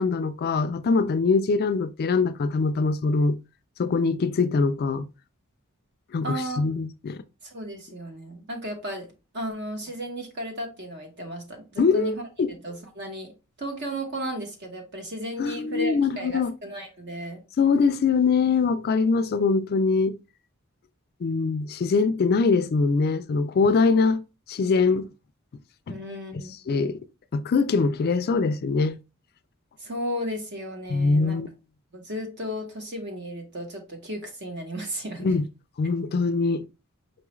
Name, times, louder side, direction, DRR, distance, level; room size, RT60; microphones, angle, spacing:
voice 1, 0.0-3.4 3.8-5.1 6.1-7.2 11.8-12.5 15.4-16.5 17.6-20.2 21.2-24.2 24.5-25.1 25.9-26.0 26.7-27.0 27.3-29.0 30.9-31.5 35.2-35.4 35.8-36.6, left 4 dB, 45° left, 0.3 m, -23 dB
voice 2, 6.2-6.6 7.4-12.1 12.5-13.3 13.6-17.4 25.9-26.5 29.8-31.4 31.9-35.3, equal, 50° right, 1.1 m, -34 dB
5.3 x 2.4 x 3.0 m
head